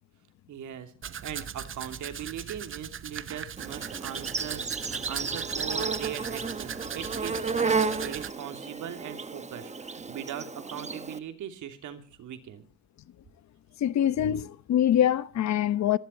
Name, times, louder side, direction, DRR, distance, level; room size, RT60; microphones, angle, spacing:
voice 1, 0.5-0.9 1.2-12.7, right 9 dB, 75° right, 2.7 m, -40 dB
Domestic sounds home sounds, 1.0-8.3, right 8 dB, 45° right, 1.0 m, -39 dB
Insect, 3.6-11.2, right 4 dB, 20° right, 1.2 m, -32 dB
voice 2, 13.8-16.0, left 10 dB, 65° left, 0.9 m, -24 dB
25.5 x 11.5 x 4.4 m
cardioid pair, 90°, 30 cm